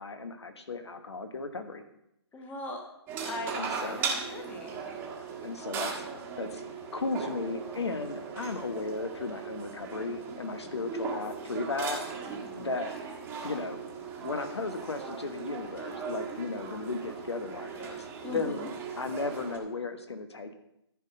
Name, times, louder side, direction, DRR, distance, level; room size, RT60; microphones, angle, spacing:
voice 1, 0.0-1.8 3.5-4.0 5.4-6.0 6.4-6.6 6.9-12.0 12.5-12.9 13.4-13.8 14.2-18.6 19.0-20.5, left 3 dB, 75° left, 8 dB, 1.3 m, -35 dB
voice 2, 2.3-2.8 3.2-4.8 12.3-12.7 18.2-18.7, left 2 dB, 10° left, 3 dB, 1.1 m, -40 dB
sound 1, 3.1-19.6, right 5 dB, 15° right, 1.4 m, -38 dB
14.0 x 4.8 x 5.4 m, 0.81 s
figure-of-eight pair, 140°, 14 cm